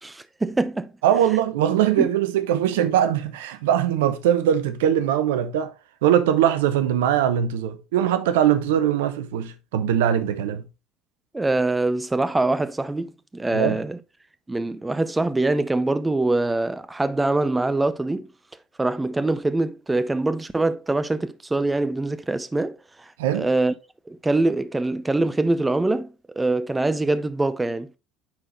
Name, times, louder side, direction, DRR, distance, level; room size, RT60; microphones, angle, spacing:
voice 1, 0.0-0.9 2.0-2.1 11.3-14.0 14.5-18.3 18.8-23.7 24.1-27.9, right 2 dB, 15° right, 0.7 m, -24 dB
voice 2, 1.0-5.7 6.0-10.6 13.5-13.8 23.2-23.5, right 10 dB, 65° right, 0.8 m, -21 dB
9.6 x 4.4 x 3.0 m
figure-of-eight pair, 65°, 0 cm